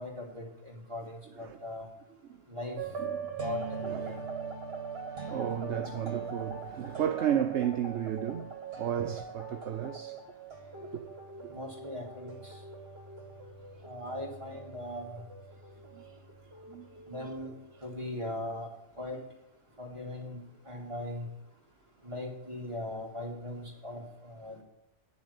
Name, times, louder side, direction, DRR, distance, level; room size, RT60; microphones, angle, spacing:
voice 1, 0.0-1.9 2.5-2.8 3.4-4.2 11.5-12.6 13.8-15.2 17.1-17.5 17.8-18.7 19.0-19.2 19.8-21.3 22.0-24.6, left 1 dB, 25° right, 2.7 m, -39 dB
sound 1, 2.8-17.8, right 5 dB, 55° right, 2.1 m, -41 dB
voice 2, 3.0-3.3 3.9-4.2 5.3-10.2 10.8-11.1 15.9-16.1 16.7-17.2, right 9 dB, 70° right, 1.0 m, -33 dB
9.7 x 7.2 x 8.0 m
omnidirectional pair, 1.3 m